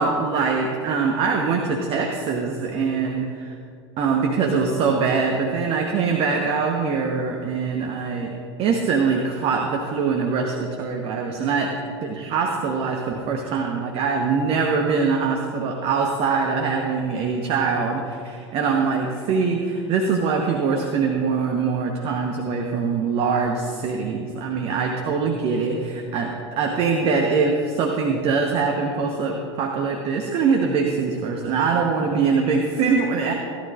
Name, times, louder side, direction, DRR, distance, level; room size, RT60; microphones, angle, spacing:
voice 1, 0.0-3.5 4.0-8.3 8.6-33.3, right 5 dB, 40° right, 2 dB, 1.1 m, -23 dB
17.0 x 11.5 x 2.5 m, 2.4 s
figure-of-eight pair, 85°, 15 cm